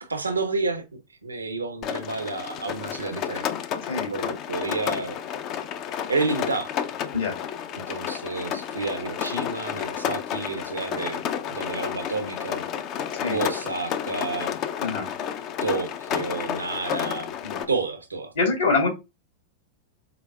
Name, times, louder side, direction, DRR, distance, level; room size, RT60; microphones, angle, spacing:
voice 1, 0.0-3.5 4.1-5.2 6.1-6.7 7.7-11.2 11.5-12.7 13.3-14.6 15.6-17.3 17.7-18.3, right 3 dB, 90° right, 0.8 m, -30 dB
Rain, 1.8-17.6, left 9 dB, 40° left, 0.5 m, -31 dB
voice 2, 18.3-18.9, left 4 dB, 75° left, 2.6 m, -24 dB
5.0 x 3.4 x 2.3 m
figure-of-eight pair, 100°, 0 cm